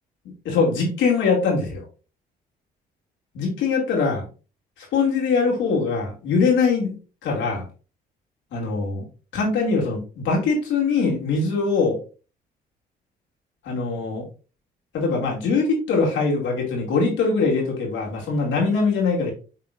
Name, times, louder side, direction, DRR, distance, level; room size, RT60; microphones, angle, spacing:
voice 1, 0.4-1.8 3.3-4.3 4.8-7.0 7.2-7.7 8.5-9.1 9.3-12.0 13.6-14.2 14.9-19.3, left 4 dB, 75° left, -1 dB, 2.5 m, -22 dB
11.0 x 3.8 x 2.5 m, 0.35 s
supercardioid pair, 65°, 20 cm